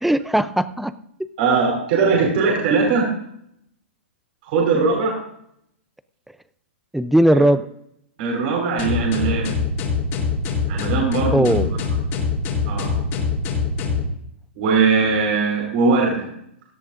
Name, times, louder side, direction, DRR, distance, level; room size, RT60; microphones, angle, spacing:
voice 1, 0.0-0.9 6.9-7.6 11.3-11.8, right 1 dB, ahead, 14 dB, 0.5 m, -18 dB
voice 2, 1.4-3.1 4.4-5.2 8.2-9.6 10.7-11.5 12.7-13.0 14.6-16.3, right 4 dB, 55° right, -1 dB, 4.5 m, -20 dB
sound 1, 8.8-14.1, left 5 dB, 35° left, 3.3 m, -23 dB
17.5 x 13.0 x 2.6 m, 0.73 s
hypercardioid pair, 130°, 7 cm